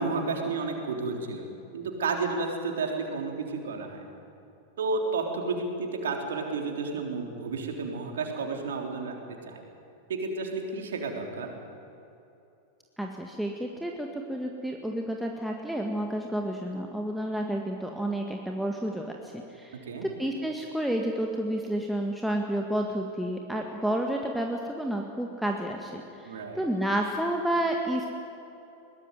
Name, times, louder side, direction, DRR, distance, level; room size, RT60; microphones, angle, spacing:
voice 1, 0.0-1.4 1.7-4.1 4.8-9.6 10.1-11.6 19.9-20.1 26.2-26.6, right 4 dB, 65° right, 2 dB, 3.6 m, -31 dB
voice 2, 13.0-28.1, right 1 dB, ahead, 1 dB, 1.9 m, -30 dB
22.5 x 19.0 x 9.3 m, 2.8 s
figure-of-eight pair, 90°, 0 cm